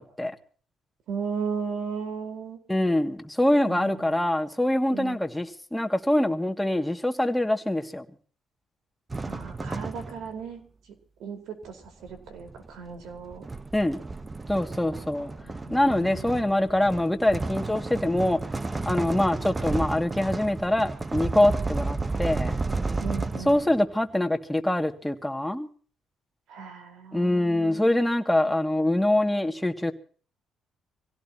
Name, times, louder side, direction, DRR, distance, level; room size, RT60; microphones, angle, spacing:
voice 1, 1.1-2.6 3.7-4.2 4.9-5.2 9.2-10.6 11.2-13.5 14.9-16.5 23.0-23.6 26.5-28.1, right 6 dB, 80° right, 4.5 m, -36 dB
voice 2, 2.7-8.1 13.7-14.0 14.5-15.3 15.7-18.4 18.8-22.6 23.5-25.7 27.1-29.9, left 1 dB, 5° left, 2.3 m, -24 dB
sound 1, 9.1-10.4 11.6-23.9, right 3 dB, 25° right, 1.1 m, -32 dB
25.5 x 17.0 x 3.0 m
cardioid pair, 90°, 0 cm